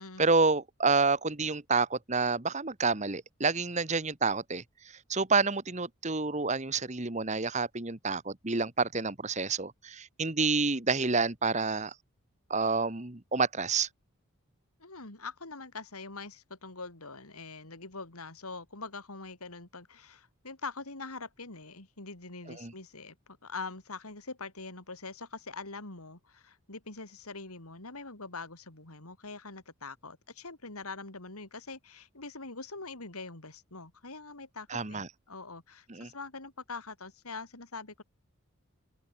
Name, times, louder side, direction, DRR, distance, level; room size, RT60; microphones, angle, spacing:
voice 1, 0.2-4.6 5.1-11.9 12.5-13.9 22.6-22.7 34.7-35.1 35.9-36.1, right 4 dB, 30° right, 1.5 m, -28 dB
voice 2, 14.8-38.0, left 3 dB, 90° left, 4.1 m, -43 dB
head